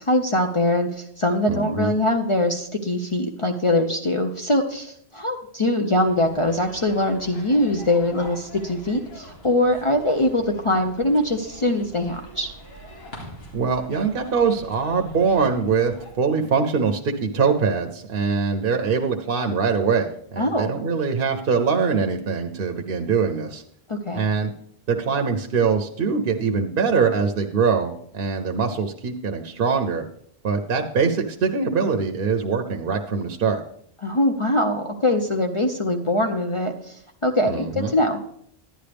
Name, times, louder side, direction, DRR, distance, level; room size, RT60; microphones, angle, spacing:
voice 1, 0.0-12.5 20.4-20.7 23.9-24.2 34.0-36.9 37.2-38.2, left 1 dB, 35° left, 3 dB, 0.7 m, -22 dB
voice 2, 1.5-1.9 13.5-23.6 24.1-24.5 24.9-30.0 30.4-33.6 37.5-37.9, right 5 dB, 65° right, 5 dB, 0.9 m, -23 dB
sound 1, 6.0-16.1, equal, 80° left, 2.5 m, -44 dB
10.5 x 10.0 x 3.4 m, 0.68 s
omnidirectional pair, 1.0 m